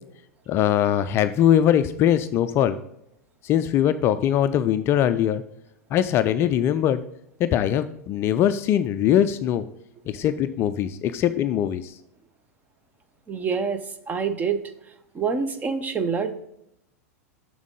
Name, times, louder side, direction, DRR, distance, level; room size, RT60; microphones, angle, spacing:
voice 1, 0.5-2.8 3.4-5.4 5.9-7.0 7.4-9.6 10.1-11.9, left 10 dB, 30° left, 12 dB, 0.3 m, -21 dB
voice 2, 13.3-14.6 15.1-16.3, right 5 dB, 20° right, 9 dB, 0.7 m, -26 dB
7.1 x 6.4 x 3.7 m, 0.79 s
figure-of-eight pair, 90°, 8 cm